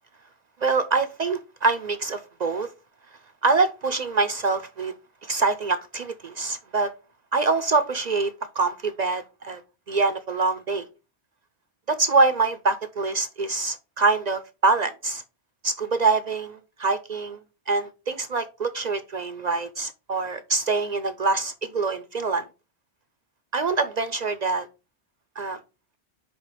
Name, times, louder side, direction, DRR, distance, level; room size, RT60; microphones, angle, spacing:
voice 1, 0.6-2.7 3.4-4.9 5.2-6.9 7.3-9.6 9.9-10.9 11.9-15.2 15.6-17.4 17.7-22.4 23.5-24.7 25.4-25.6, right 3 dB, 50° right, 0.5 m, -25 dB
5.2 x 4.4 x 4.9 m
omnidirectional pair, 1.1 m